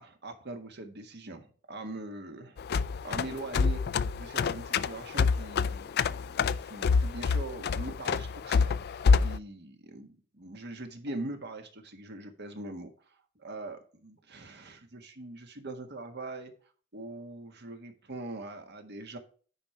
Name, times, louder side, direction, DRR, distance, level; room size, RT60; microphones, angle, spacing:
voice 1, 0.0-2.6 3.0-12.9 13.4-16.5 16.9-19.2, right 2 dB, 55° right, 6 dB, 1.5 m, -42 dB
sound 1, 2.6-9.4, left 5 dB, 55° left, 0.4 m, -27 dB
9.7 x 5.1 x 4.4 m, 0.41 s
head